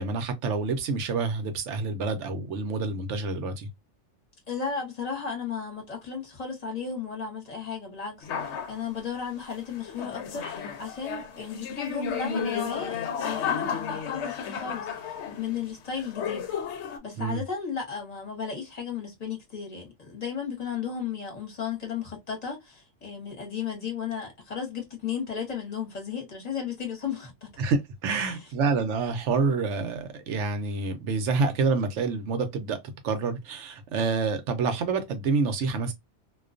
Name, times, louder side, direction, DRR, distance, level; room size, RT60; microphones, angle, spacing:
voice 1, 0.0-3.7 17.2-17.4 27.6-32.8 33.0-35.9, right 4 dB, 75° right, 0.9 m, -27 dB
voice 2, 4.5-16.5 17.0-27.5 28.1-28.4, left 6 dB, 35° left, 1.0 m, -34 dB
sound 1, 8.2-8.8 9.7-15.6 15.9-17.0, left 7 dB, 65° left, 0.9 m, -33 dB
2.4 x 2.2 x 2.4 m
omnidirectional pair, 1.3 m